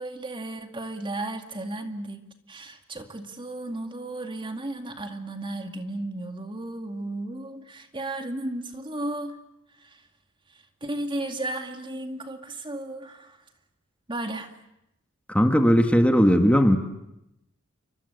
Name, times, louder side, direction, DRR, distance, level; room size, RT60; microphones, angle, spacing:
voice 1, 0.0-9.4 9.8-10.0 10.5-13.4 14.1-14.5, right 1 dB, 25° right, 6 dB, 2.2 m, -34 dB
voice 2, 15.3-16.8, equal, 5° left, 5 dB, 1.8 m, -18 dB
29.0 x 24.0 x 8.1 m, 0.85 s
head